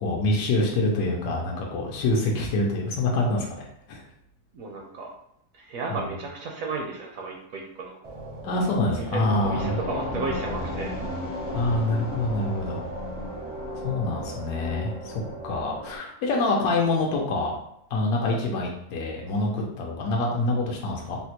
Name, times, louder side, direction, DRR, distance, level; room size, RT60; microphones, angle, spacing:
voice 1, 0.0-3.6 3.9-4.0 5.9-6.2 8.4-9.8 11.5-12.8 13.8-17.6 17.9-21.2, left 2 dB, 75° left, -1 dB, 1.1 m, -26 dB
voice 2, 4.5-5.1 5.5-8.0 9.0-9.1 9.4-10.9, right 3 dB, 70° right, 0 dB, 0.9 m, -33 dB
sound 1, 8.0-15.9, right 3 dB, 45° right, 0.5 m, -40 dB
sound 2, 9.2-16.0, left 2 dB, 50° left, 0.5 m, -35 dB
3.7 x 2.1 x 2.8 m, 0.75 s
omnidirectional pair, 1.6 m